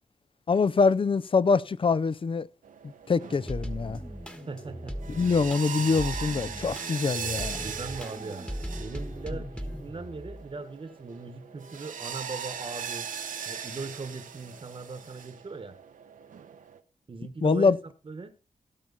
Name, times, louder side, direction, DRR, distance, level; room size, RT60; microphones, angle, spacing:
voice 1, 0.5-2.5 3.1-4.0 5.1-7.6 17.4-17.8, left 4 dB, 40° left, 0.5 m, -24 dB
sound 1, 2.6-16.8, right 7 dB, 90° right, 1.0 m, -40 dB
sound 2, 3.2-10.6 11.1-12.0 12.6-12.8 13.1-14.1, equal, 5° left, 1.4 m, -39 dB
voice 2, 4.5-4.9 7.6-13.1 13.4-15.8 17.1-17.8 18.0-18.3, right 4 dB, 40° right, 1.2 m, -39 dB
17.0 x 6.0 x 4.0 m
wide cardioid pair, 85°, 13 cm